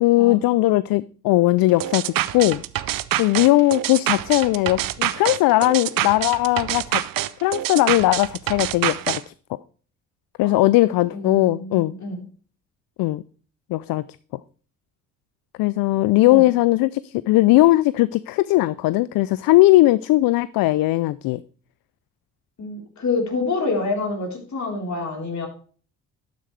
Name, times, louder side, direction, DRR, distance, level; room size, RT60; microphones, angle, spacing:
voice 1, 0.0-2.6 3.2-7.0 7.4-9.2 10.4-11.9 13.0-13.2 13.7-14.0 15.6-21.4, left 18 dB, 65° left, 0.5 m, -18 dB
sound 1, 1.8-9.2, right 13 dB, 60° right, 0.7 m, -26 dB
voice 2, 11.1-12.2 16.3-16.4 22.6-25.5, left 3 dB, 45° left, 4.0 m, -27 dB
12.0 x 9.1 x 3.3 m
hypercardioid pair, 50°, 38 cm